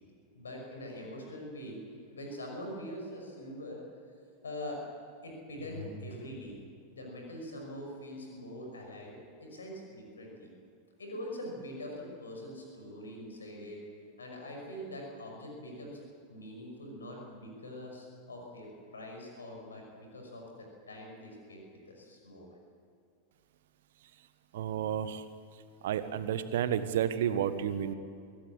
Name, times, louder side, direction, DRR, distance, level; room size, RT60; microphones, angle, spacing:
voice 1, 0.3-1.8 2.0-3.9 4.4-4.8 5.2-6.6 6.9-9.1 9.4-10.5 11.0-13.8 14.2-16.0 16.3-19.8 20.1-22.5, left 1 dB, 70° left, 1 dB, 5.8 m, -43 dB
voice 2, 24.5-25.2 25.8-27.9, right 9 dB, 55° right, 12 dB, 1.4 m, -31 dB
25.5 x 16.5 x 8.8 m, 2.5 s
figure-of-eight pair, 90°, 0 cm